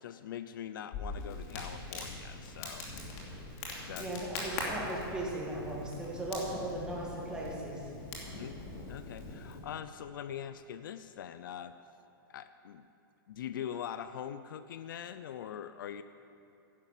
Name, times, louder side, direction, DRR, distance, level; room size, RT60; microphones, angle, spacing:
voice 1, 0.0-2.9 3.8-4.1 8.4-8.6 8.9-11.8 12.3-12.9 13.3-16.0, left 9 dB, 60° left, 12 dB, 0.5 m, -42 dB
Crackle, 0.9-9.6, left 2 dB, 35° left, 2.8 m, -42 dB
voice 2, 4.0-7.8, right 1 dB, 5° right, -4 dB, 2.0 m, -37 dB
11.0 x 11.0 x 7.4 m, 2.8 s
hypercardioid pair, 165°, 12 cm